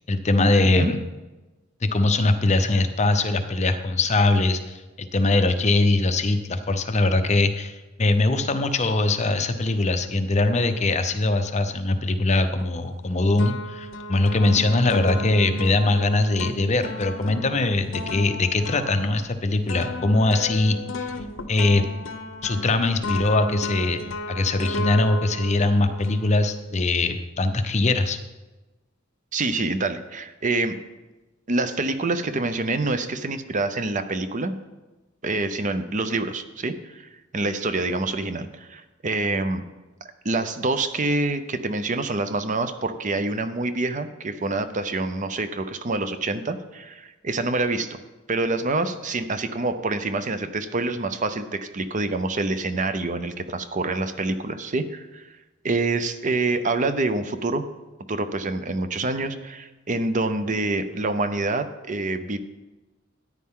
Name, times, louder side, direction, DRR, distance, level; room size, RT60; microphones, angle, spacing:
voice 1, 0.1-1.0 1.8-21.1 21.5-21.8 22.4-24.0 24.3-28.2, left 2 dB, 35° left, 8 dB, 0.7 m, -22 dB
sound 1, 12.6-13.1 13.4-26.8, left 1 dB, 65° left, 0.8 m, -33 dB
voice 2, 29.3-30.8 31.5-34.5 35.2-39.6 40.0-48.0 48.3-55.4 55.6-57.7 58.1-62.4, right 2 dB, 40° right, 10 dB, 0.7 m, -26 dB
14.0 x 9.7 x 3.7 m, 1.1 s
head